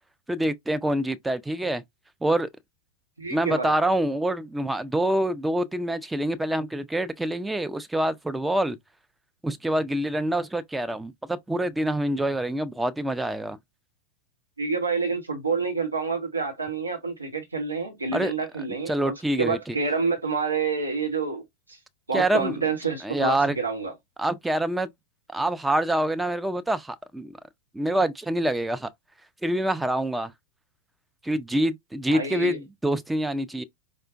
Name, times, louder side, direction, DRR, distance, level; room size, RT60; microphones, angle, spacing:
voice 1, 0.3-1.8 2.2-2.5 3.3-8.8 9.4-13.6 18.1-18.3 18.9-19.8 22.1-22.6 23.0-23.6 24.2-24.9 25.3-27.3 27.7-28.9 29.4-30.3 31.2-33.6, right 1 dB, 5° right, 0.4 m, -26 dB
voice 2, 3.2-3.7 14.6-21.4 21.7-21.8 22.1-23.9 32.1-32.6, right 4 dB, 80° right, 0.8 m, -28 dB
4.8 x 2.1 x 2.4 m
figure-of-eight pair, 90°, 0 cm